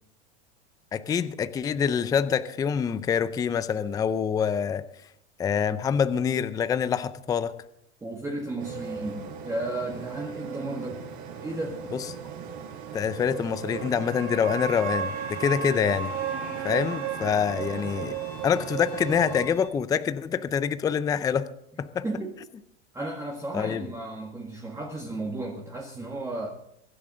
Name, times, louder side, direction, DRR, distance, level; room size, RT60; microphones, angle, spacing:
voice 1, 0.9-4.8 5.4-7.5 12.9-16.1 16.6-18.1 18.4-21.5 21.8-22.0 23.5-23.8, left 7 dB, 10° left, 13 dB, 0.5 m, -26 dB
voice 2, 8.0-11.0 11.4-11.8 22.0-22.3 22.9-26.5, right 2 dB, 10° right, 0 dB, 1.8 m, -34 dB
sound 1, 8.6-19.4, right 8 dB, 50° right, 5.8 m, -35 dB
Bowed string instrument, 14.6-19.7, left 4 dB, 75° left, 3.7 m, -50 dB
24.0 x 11.0 x 3.9 m, 0.75 s
supercardioid pair, 135°, 35 cm